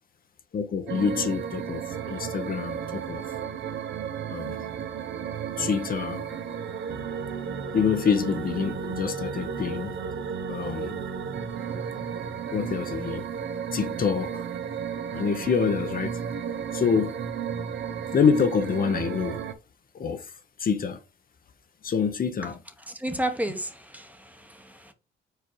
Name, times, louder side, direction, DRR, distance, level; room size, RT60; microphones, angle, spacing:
voice 1, 0.5-3.2 4.3-4.6 5.6-6.2 7.7-9.9 10.5-11.0 12.5-13.2 13.7-14.5 15.1-16.2 16.7-17.1 18.1-19.4 19.9-20.3 20.6-21.0 21.8-22.6, left 6 dB, 45° left, 0.8 m, -26 dB
sound 1, 0.9-19.5, right 7 dB, 65° right, 1.0 m, -33 dB
voice 2, 22.4-24.9, right 1 dB, 10° right, 1.1 m, -33 dB
4.8 x 4.4 x 4.6 m
cardioid pair, 90°, 20 cm